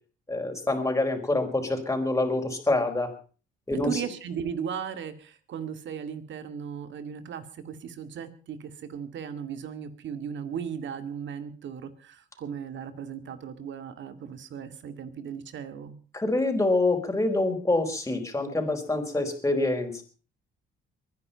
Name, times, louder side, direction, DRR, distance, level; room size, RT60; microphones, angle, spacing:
voice 1, 0.3-3.1 3.7-4.0 16.1-20.0, left 2 dB, 15° left, 3 dB, 4.7 m, -26 dB
voice 2, 3.7-16.0, right 7 dB, 70° right, 10 dB, 2.3 m, -37 dB
23.0 x 10.5 x 5.7 m, 0.40 s
cardioid pair, 90°, 20 cm